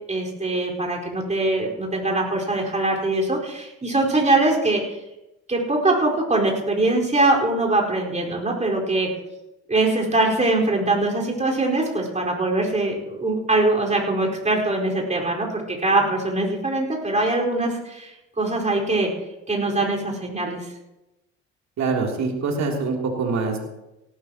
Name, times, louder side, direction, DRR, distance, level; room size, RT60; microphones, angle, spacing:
voice 1, 0.1-4.8 5.5-9.1 9.7-19.1 19.5-20.7, right 2 dB, 20° right, -2 dB, 4.8 m, -22 dB
voice 2, 21.8-23.6, right 4 dB, 55° right, 1 dB, 3.2 m, -24 dB
18.0 x 13.0 x 3.0 m, 0.94 s
hypercardioid pair, 60°, 33 cm